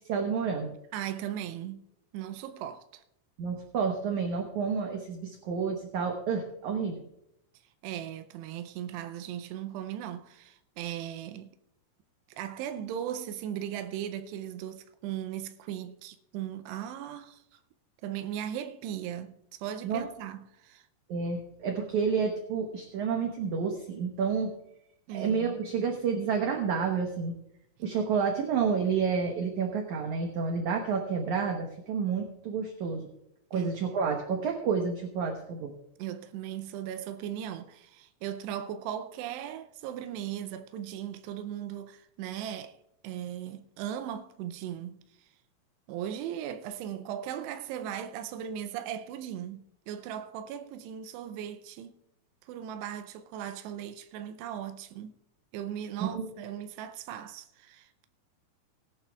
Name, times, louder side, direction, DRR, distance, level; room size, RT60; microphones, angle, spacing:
voice 1, 0.1-0.7 3.4-7.1 19.8-20.0 21.1-24.5 25.1-27.3 27.8-33.1 33.5-35.7 56.0-56.3, right 5 dB, 70° right, 1.9 m, -30 dB
voice 2, 0.9-1.8 2.1-3.0 7.8-11.5 12.3-17.6 18.0-20.9 25.1-25.6 33.5-33.7 36.0-45.3 45.9-51.9 52.4-55.1 55.5-57.9, right 10 dB, 90° right, 2.8 m, -38 dB
19.5 x 11.5 x 2.4 m
omnidirectional pair, 4.8 m